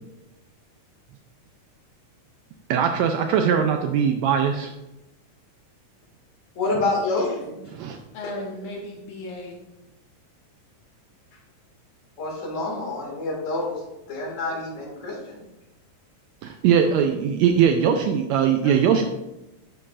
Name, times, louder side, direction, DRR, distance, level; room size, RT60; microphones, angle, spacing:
voice 1, 2.7-4.7 7.7-8.0 16.4-19.1, right 8 dB, 90° right, 5 dB, 1.5 m, -20 dB
voice 2, 6.6-7.6 12.2-13.8 14.1-15.4, left 2 dB, 30° left, -3 dB, 1.9 m, -27 dB
voice 3, 8.1-9.6 12.5-12.7 18.6-18.8, left 2 dB, 75° left, 0 dB, 2.4 m, -35 dB
10.0 x 6.8 x 2.5 m, 0.96 s
omnidirectional pair, 3.7 m